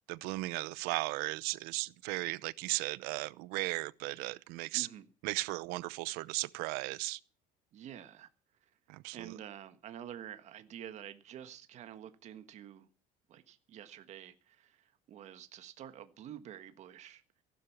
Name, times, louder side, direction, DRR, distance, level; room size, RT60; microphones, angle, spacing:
voice 1, 0.1-4.9 5.2-7.2 8.9-9.3, right 22 dB, 90° right, 0.8 m, -36 dB
voice 2, 4.7-5.1 7.7-8.3 8.6-8.7 9.1-12.9 13.3-17.2, right 10 dB, 45° right, 1.5 m, -48 dB
15.5 x 12.0 x 7.3 m
cardioid pair, 145°, 16 cm